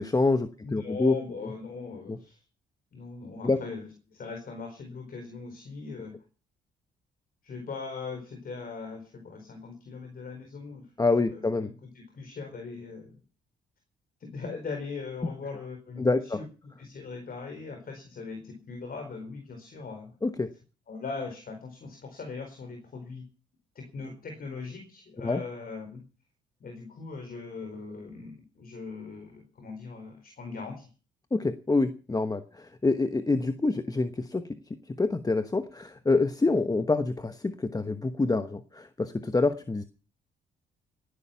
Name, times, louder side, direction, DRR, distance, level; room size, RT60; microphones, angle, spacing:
voice 1, 0.0-1.1 2.1-2.2 3.4-3.6 11.0-11.7 16.0-16.4 20.2-20.5 25.2-25.4 31.3-34.4 35.0-39.8, left 3 dB, 20° left, 11 dB, 1.1 m, -26 dB
voice 2, 0.6-2.4 2.9-6.1 7.4-10.9 11.2-13.2 14.2-20.2 20.9-23.2 23.7-26.0 26.6-30.9, left 4 dB, 50° left, 5 dB, 4.4 m, -40 dB
18.0 x 11.5 x 5.8 m, 0.37 s
cardioid pair, 90°, 20 cm